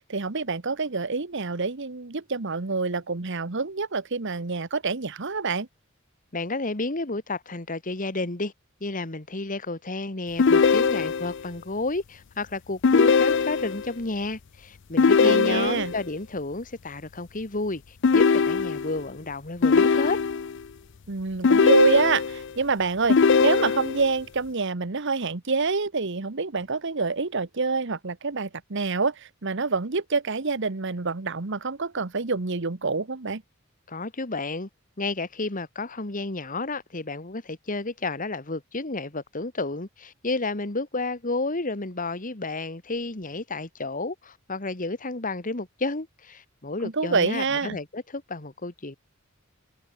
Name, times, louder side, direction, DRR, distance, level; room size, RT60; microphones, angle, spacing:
voice 1, 0.1-5.7 15.2-15.9 21.1-33.4 46.8-47.8, right 4 dB, 60° right, 1.2 m, -27 dB
voice 2, 6.3-8.5 8.8-20.2 33.9-34.7 35.0-49.0, left 2 dB, 40° left, 1.9 m, -31 dB
sound 1, 10.4-11.4 12.8-13.9 15.0-16.0 18.0-19.0 19.6-20.6 21.4-22.5 23.1-24.1, left 5 dB, 60° left, 0.5 m, -20 dB
head